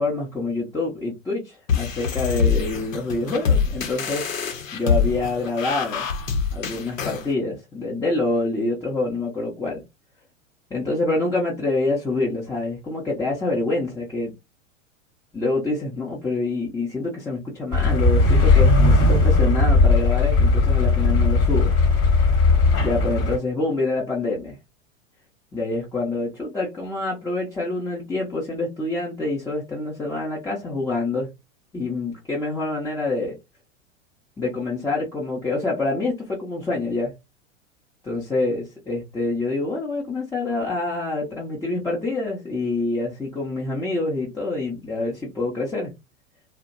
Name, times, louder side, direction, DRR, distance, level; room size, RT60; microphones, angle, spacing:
voice 1, 0.0-4.2 4.7-6.1 6.5-9.8 10.7-14.3 15.3-21.7 22.8-24.6 25.5-31.3 31.7-33.4 34.4-37.1 38.0-45.9, left 2 dB, 10° left, 0.7 m, -26 dB
sound 1, 1.7-7.3, left 6 dB, 75° left, 0.8 m, -24 dB
sound 2, 17.7-23.4, left 3 dB, 35° left, 1.1 m, -17 dB
2.5 x 2.1 x 2.5 m
hypercardioid pair, 95°, 39 cm